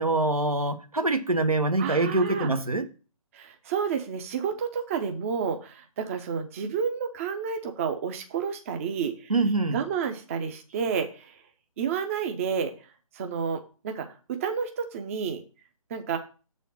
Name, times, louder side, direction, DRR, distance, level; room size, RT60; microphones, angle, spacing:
voice 1, 0.0-2.9 9.3-9.8, right 2 dB, 80° right, 1.1 m, -24 dB
voice 2, 1.8-2.5 3.3-9.3 9.7-11.3 11.8-12.7 13.1-15.4 15.9-16.2, right 6 dB, 25° right, 0.6 m, -30 dB
7.3 x 4.2 x 5.4 m
figure-of-eight pair, 140°, 18 cm